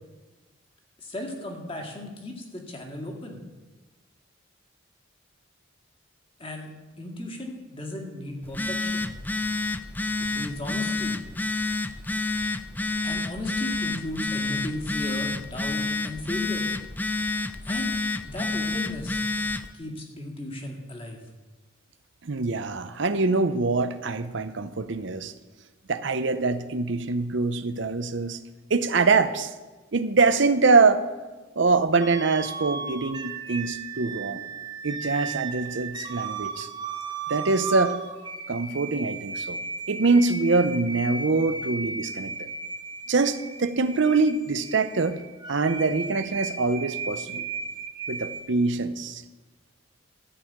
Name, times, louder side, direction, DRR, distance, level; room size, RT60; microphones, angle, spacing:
voice 1, 1.0-3.4 6.4-6.7 7.0-9.1 10.2-11.2 13.0-16.7 17.7-18.0 18.2-19.2 19.7-21.2, left 1 dB, 25° left, 1 dB, 2.0 m, -36 dB
Telephone, 8.4-19.7, left 3 dB, 10° left, 0.4 m, -29 dB
voice 2, 22.2-25.3 25.9-28.4 28.7-29.5 29.9-31.1 31.6-34.4 34.8-36.7 37.3-38.0 38.5-39.6 39.9-42.5 43.1-45.2 45.5-47.4 48.1-49.2, right 3 dB, 60° right, 12 dB, 0.7 m, -24 dB
sound 1, 32.0-48.4, right 4 dB, 20° right, 0.9 m, -35 dB
13.5 x 5.5 x 8.6 m, 1.2 s
head